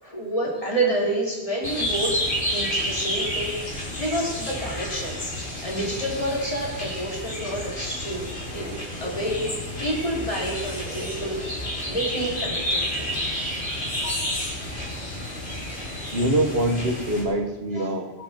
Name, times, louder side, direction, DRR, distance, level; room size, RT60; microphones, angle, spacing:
voice 1, 0.0-2.1 2.5-3.6 4.0-5.2 5.6-8.3 8.5-9.4 9.8-13.2 13.9-15.0 17.7-17.9, right 1 dB, 30° left, -5 dB, 4.7 m, -29 dB
sound 1, 1.6-17.2, equal, 55° left, 4.1 m, -30 dB
sound 2, 8.9-9.8 10.8-11.9 12.8-13.8, right 1 dB, 10° left, 2.6 m, -45 dB
voice 2, 16.1-18.1, right 1 dB, 70° right, 5 dB, 1.9 m, -24 dB
20.5 x 11.0 x 4.6 m, 1.1 s
omnidirectional pair, 1.1 m